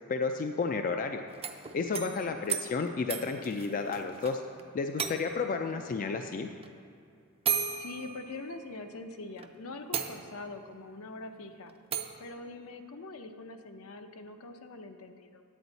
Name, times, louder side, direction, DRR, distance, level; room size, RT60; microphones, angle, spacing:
voice 1, 0.1-1.2 1.7-4.4 4.7-6.5, left 4 dB, 40° left, 6 dB, 0.3 m, -32 dB
sound 1, 1.3-4.3 4.6-4.7 5.0-5.6 6.6-6.7 7.4-8.9 9.4-9.5 9.9-10.6 11.9-12.2, right 7 dB, 25° right, 0.5 m, -35 dB
voice 2, 2.1-2.4 5.4-5.8 7.8-11.7 12.2-15.4, left 2 dB, 70° left, 7 dB, 0.7 m, -44 dB
9.2 x 8.8 x 4.0 m, 2.5 s
head